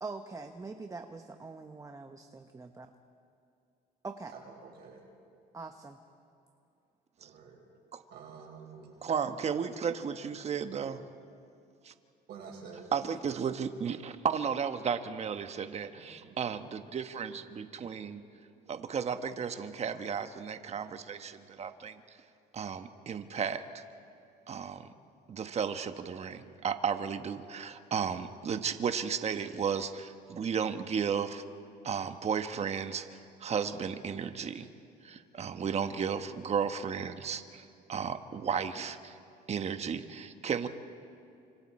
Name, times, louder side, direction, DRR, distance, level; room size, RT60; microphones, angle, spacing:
voice 1, 0.0-2.9 4.0-4.3 5.5-6.0, right 3 dB, 20° right, 6 dB, 1.0 m, -43 dB
voice 2, 4.3-5.0 7.2-7.6 8.1-9.0 12.3-12.9 16.0-16.6, right 5 dB, 70° right, -2 dB, 4.6 m, -49 dB
voice 3, 9.0-11.0 11.8-11.9 12.9-18.2 18.7-22.0 22.5-23.8 24.5-24.9 25.3-31.4 31.8-34.7 35.0-39.2 39.5-40.7, right 7 dB, 40° right, 9 dB, 1.2 m, -34 dB
29.0 x 26.5 x 4.3 m, 2.5 s
cardioid pair, 110°, 17 cm